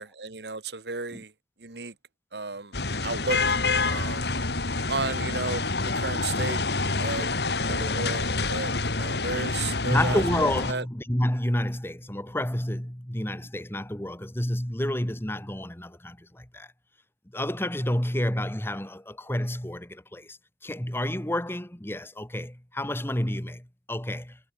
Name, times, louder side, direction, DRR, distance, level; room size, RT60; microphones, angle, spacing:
voice 1, 0.0-1.3 1.6-1.9 2.3-2.8 3.0-3.4 3.8-4.3 4.9-5.7 5.9-6.6 7.0-7.3 7.6-10.9, right 3 dB, 70° right, 2.0 m, -33 dB
sound 1, 2.7-10.7, left 3 dB, 70° left, 2.6 m, -27 dB
voice 2, 9.8-16.7 17.3-24.4, left 1 dB, 15° left, 1.9 m, -29 dB
head